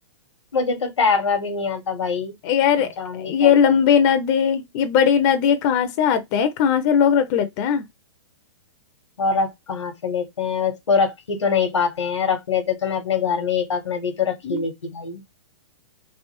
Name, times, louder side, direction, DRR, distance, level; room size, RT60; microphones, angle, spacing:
voice 1, 0.5-2.3 2.8-3.5 9.2-15.2, left 5 dB, 85° left, 1.1 m, -23 dB
voice 2, 2.4-7.8 14.4-14.6, left 8 dB, 40° left, 0.6 m, -19 dB
3.3 x 2.7 x 2.9 m
hypercardioid pair, 125°, 15 cm